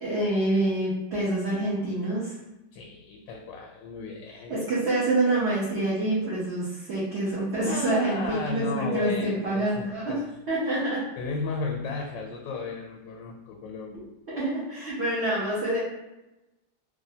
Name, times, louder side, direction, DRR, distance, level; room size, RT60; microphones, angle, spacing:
voice 1, 0.0-2.3 4.5-10.2 10.5-11.0 14.3-15.8, right 2 dB, 45° right, -9 dB, 1.0 m, -26 dB
voice 2, 2.7-4.6 7.6-10.3 11.2-14.1, left 4 dB, 85° left, 0 dB, 1.3 m, -34 dB
3.2 x 2.5 x 2.6 m, 0.98 s
omnidirectional pair, 1.9 m